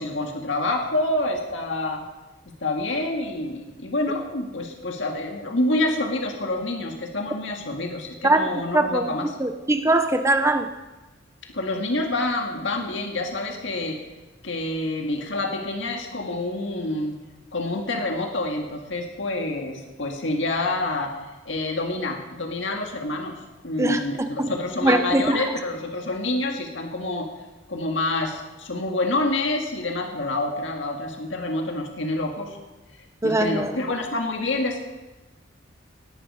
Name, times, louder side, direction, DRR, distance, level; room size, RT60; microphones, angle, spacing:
voice 1, 0.0-2.0 2.6-9.3 11.5-14.0 14.4-17.2 17.5-27.3 27.7-32.6 33.2-34.8, left 2 dB, 70° left, 2 dB, 1.9 m, -27 dB
voice 2, 8.7-9.0 9.4-10.7 23.8-24.0 24.4-24.5 24.8-25.5 33.2-33.8, right 2 dB, 15° right, 8 dB, 0.7 m, -21 dB
18.5 x 11.0 x 4.9 m, 1.1 s
head